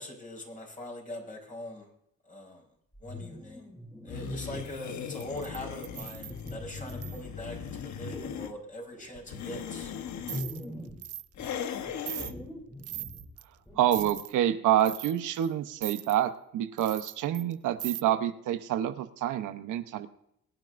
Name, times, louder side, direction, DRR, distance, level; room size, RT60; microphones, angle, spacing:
voice 1, 0.0-1.9 2.3-2.6 3.0-3.7 4.0-7.6 7.8-9.9, left 1 dB, 25° left, 1 dB, 5.0 m, -42 dB
sound 1, 2.9-4.9 5.5-7.5 8.0-8.4 8.9-11.1 11.4-14.2, left 1 dB, 5° left, 3.3 m, -43 dB
sound 2, 4.1-8.5 9.2-10.4 11.3-12.3, left 8 dB, 70° left, 1.2 m, -39 dB
sound 3, 5.1-7.2 10.3-10.6 11.0-11.3 11.6-11.7 12.1-12.3 12.8-13.4 13.9-14.3 14.8-15.5 15.8-16.2 16.8-17.5 17.8-18.0, right 13 dB, 55° right, 0.5 m, -40 dB
voice 2, 13.8-20.1, right 11 dB, 85° right, 9 dB, 1.0 m, -27 dB
23.0 x 9.1 x 2.6 m, 0.74 s
cardioid pair, 90°, 30 cm